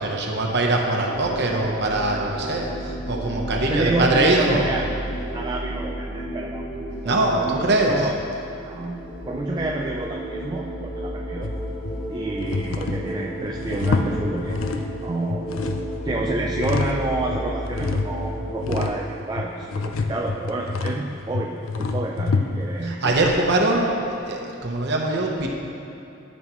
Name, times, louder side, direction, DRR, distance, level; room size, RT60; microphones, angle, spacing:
voice 1, 0.0-4.7 7.0-8.1 22.8-25.5, right 2 dB, 55° right, 0 dB, 0.9 m, -22 dB
sound 1, 0.9-18.9, equal, 15° left, 1.7 m, -32 dB
voice 2, 3.7-4.8 5.3-6.6 7.0-8.1 8.6-11.5 12.1-14.6 15.0-15.5 16.0-23.5, right 2 dB, 20° right, 0 dB, 0.3 m, -29 dB
sound 2, 11.4-12.0 12.4-15.0 15.3-17.0 17.3-22.8, left 3 dB, 85° left, 0.5 m, -27 dB
13.0 x 5.3 x 3.0 m, 2.7 s
head